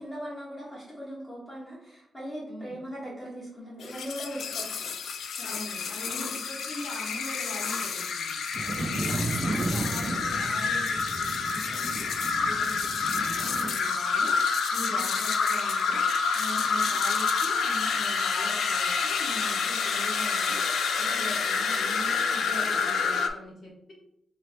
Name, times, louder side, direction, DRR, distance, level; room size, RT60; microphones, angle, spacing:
voice 1, 0.0-4.9 5.3-5.5 6.1-6.3 8.6-9.6 9.9-10.1 11.7-11.9 14.9-15.1 16.5-17.0 21.1-21.3, equal, 15° left, -8 dB, 1.2 m, -40 dB
sound 1, 3.8-23.3, left 5 dB, 85° left, 0.3 m, -28 dB
voice 2, 5.4-8.5 9.1-12.1 12.4-12.7 13.0-14.4 14.7-16.0 16.3-20.6 21.0-23.9, equal, 35° left, -3 dB, 1.4 m, -41 dB
sound 2, 8.5-13.7, right 2 dB, 30° right, 0.4 m, -34 dB
3.2 x 3.0 x 4.1 m, 0.75 s
wide cardioid pair, 140°, 0 cm